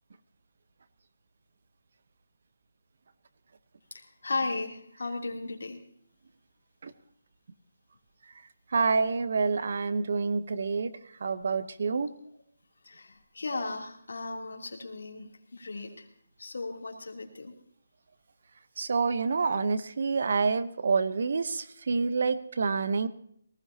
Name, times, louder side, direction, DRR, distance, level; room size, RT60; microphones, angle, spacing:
voice 1, 3.9-5.8 12.8-16.1 16.4-17.5, left 3 dB, 80° left, 2 dB, 3.2 m, -36 dB
voice 2, 8.7-10.9 11.2-12.1 18.8-23.1, right 4 dB, 50° right, 14 dB, 0.9 m, -27 dB
19.0 x 16.0 x 2.9 m, 0.66 s
hypercardioid pair, 175°, 0 cm